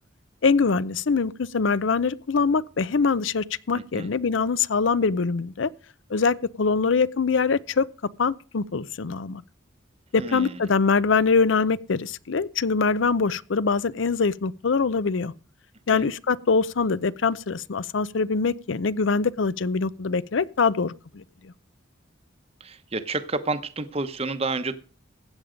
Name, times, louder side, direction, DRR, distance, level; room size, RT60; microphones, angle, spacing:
voice 1, 0.4-5.7 6.1-7.9 8.2-9.4 10.1-15.3 15.9-21.5, left 4 dB, 70° left, 0.6 m, -23 dB
voice 2, 10.2-10.6 15.9-16.1 22.6-24.8, right 3 dB, 30° right, 0.9 m, -30 dB
15.5 x 8.9 x 5.1 m
head